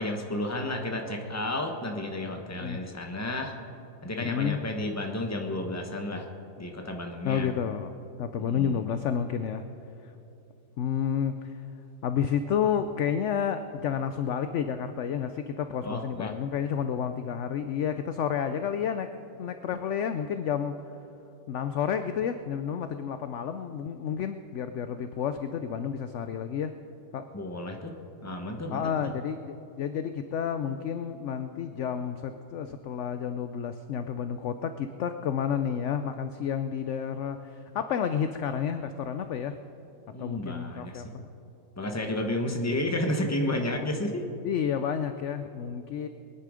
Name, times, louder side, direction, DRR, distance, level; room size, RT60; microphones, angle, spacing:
voice 1, 0.0-3.5 4.0-6.3 6.6-7.5 8.5-8.8 15.8-16.3 27.3-27.9 28.2-29.1 40.1-41.0 41.8-44.2, left 1 dB, 10° left, 3 dB, 0.9 m, -32 dB
voice 2, 4.2-4.6 7.2-9.6 10.8-11.6 12.0-19.1 19.4-20.7 21.5-26.7 27.1-27.2 28.7-39.6 40.2-41.2 44.4-46.1, left 8 dB, 70° left, 9 dB, 0.7 m, -30 dB
22.5 x 10.0 x 5.0 m, 2.8 s
omnidirectional pair, 1.8 m